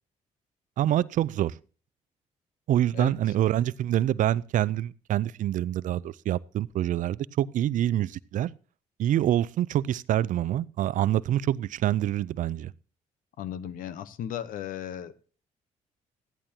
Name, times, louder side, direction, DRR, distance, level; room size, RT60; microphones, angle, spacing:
voice 1, 0.8-1.5 2.7-8.5 9.0-12.7, right 12 dB, 65° right, 0.5 m, -26 dB
voice 2, 13.4-15.1, left 10 dB, 75° left, 0.9 m, -35 dB
15.0 x 11.0 x 2.9 m
cardioid pair, 80°, 14 cm